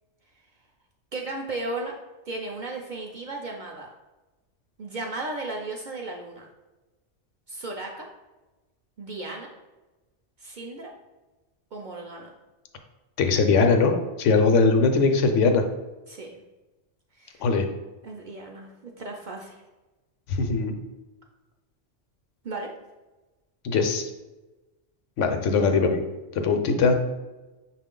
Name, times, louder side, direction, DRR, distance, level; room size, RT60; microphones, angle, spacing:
voice 1, 1.1-2.0 2.3-3.9 4.8-6.5 7.5-8.1 9.0-9.5 10.4-10.9 11.7-12.3 16.1-16.4 17.1-17.5 18.0-19.6 22.4-22.7, right 2 dB, 55° right, 1 dB, 0.5 m, -35 dB
voice 2, 13.2-15.6 17.4-17.7 20.3-20.8 23.6-24.1 25.2-26.0 26.4-27.0, left 4 dB, 90° left, 5 dB, 1.0 m, -21 dB
5.8 x 2.5 x 3.6 m, 1.1 s
omnidirectional pair, 1.2 m